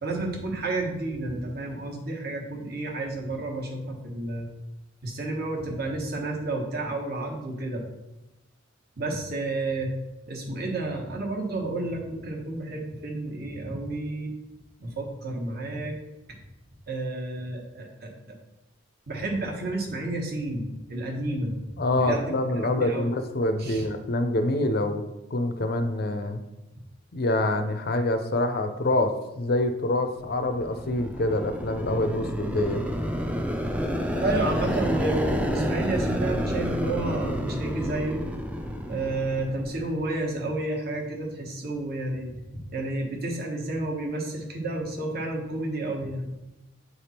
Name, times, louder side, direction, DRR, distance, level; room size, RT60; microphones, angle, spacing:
voice 1, 0.0-4.5 5.0-7.8 9.0-9.9 10.3-14.3 14.8-16.0 16.3-16.4 16.9-18.1 19.1-21.5 22.0-22.4 22.8-23.1 23.6-23.8 34.2-38.2 38.9-42.4 42.7-46.3, right 2 dB, 45° right, 0 dB, 1.2 m, -31 dB
voice 2, 21.8-25.0 25.3-26.4 27.1-32.8, left 1 dB, 45° left, 8 dB, 0.5 m, -26 dB
sound 1, 30.3-40.1, equal, 5° right, 0.4 m, -30 dB
8.2 x 3.4 x 4.3 m, 1.0 s
head